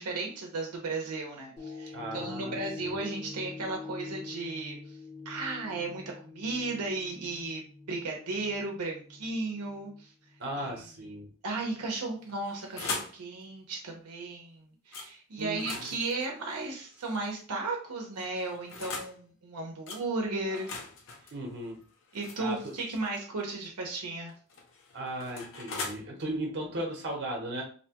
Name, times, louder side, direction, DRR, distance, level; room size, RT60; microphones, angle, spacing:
voice 1, 0.0-4.8 5.3-10.1 10.6-10.8 11.4-20.7 22.1-24.3, right 3 dB, 85° right, 1 dB, 0.7 m, -35 dB
sound 1, 1.6-10.0 10.5-10.6, left 4 dB, 5° left, 0.6 m, -45 dB
voice 2, 1.9-2.6 10.4-11.3 15.4-15.9 21.3-21.8 22.4-22.7 24.9-27.6, right 1 dB, 50° right, 0 dB, 0.8 m, -36 dB
sound 2, 12.2-13.2 14.9-15.1 15.5-17.4 18.2-19.2 19.9-20.0 20.5-23.2 24.3-25.9, left 4 dB, 60° left, 0.6 m, -41 dB
2.7 x 2.2 x 2.8 m, 0.41 s
head